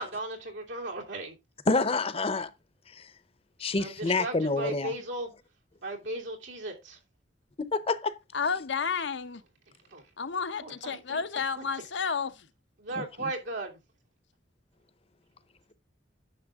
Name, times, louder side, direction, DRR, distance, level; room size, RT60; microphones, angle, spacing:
voice 1, 0.0-1.3 3.8-5.3 5.8-7.0 9.9-10.0 10.6-11.2 11.6-11.7 12.8-13.8, right 2 dB, 85° right, 3.0 m, -36 dB
voice 2, 1.7-2.5 2.9-3.1 3.6-4.9 7.7-8.1 13.0-13.3, left 3 dB, 30° left, 0.7 m, -28 dB
voice 3, 8.3-9.4 10.2-12.5, left 5 dB, 75° left, 0.8 m, -31 dB
10.0 x 6.6 x 3.6 m
head